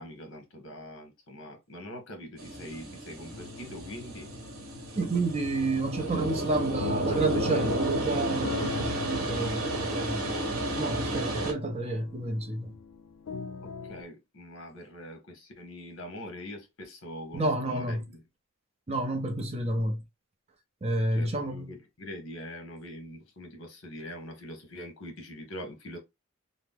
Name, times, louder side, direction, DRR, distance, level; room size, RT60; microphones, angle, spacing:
voice 1, 0.0-4.3 13.6-18.2 21.1-26.0, equal, 65° left, 1.0 m, -43 dB
sound 1, 2.4-11.5, right 1 dB, 85° right, 0.9 m, -32 dB
sound 2, 3.3-14.0, left 5 dB, 80° left, 0.4 m, -42 dB
voice 2, 4.9-10.4 10.8-12.7 17.3-18.0 18.9-20.0 20.8-21.7, right 2 dB, 30° right, 0.5 m, -30 dB
2.8 x 2.0 x 3.4 m
head